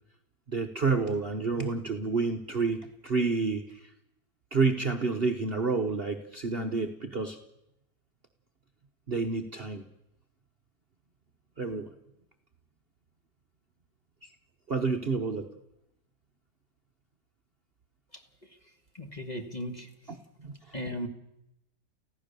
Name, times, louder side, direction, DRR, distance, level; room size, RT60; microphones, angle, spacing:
voice 1, 0.5-3.9 4.5-7.4 9.1-9.8 11.6-11.9 14.2-14.3 14.7-15.5 20.4-20.6, right 4 dB, 40° right, 4 dB, 1.1 m, -29 dB
voice 2, 18.9-20.2 20.7-21.1, equal, 25° left, 5 dB, 1.6 m, -37 dB
24.5 x 16.0 x 6.8 m, 0.86 s
omnidirectional pair, 1.9 m